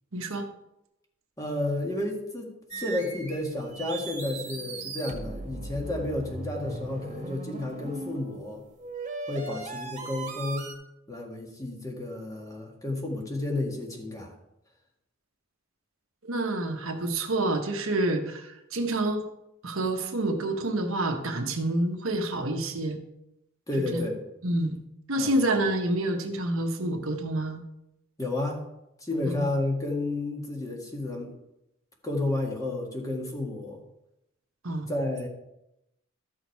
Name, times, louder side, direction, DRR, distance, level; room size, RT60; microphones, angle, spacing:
voice 1, 0.1-0.5 16.2-19.3 19.6-23.0 23.9-24.0 24.4-24.8 25.1-27.6 29.2-29.4 34.6-34.9, right 1 dB, 70° right, 4 dB, 1.2 m, -28 dB
voice 2, 1.4-2.5 2.8-8.6 9.3-10.7 11.1-14.3 23.7-24.2 25.2-25.3 28.2-28.6 29.0-31.3 32.0-33.8 34.9-35.3, left 2 dB, 15° left, 0 dB, 1.8 m, -31 dB
sound 1, 2.7-3.5 3.7-8.5 8.8-10.7, right 3 dB, 35° right, 1.7 m, -38 dB
13.0 x 6.3 x 4.7 m, 0.87 s
head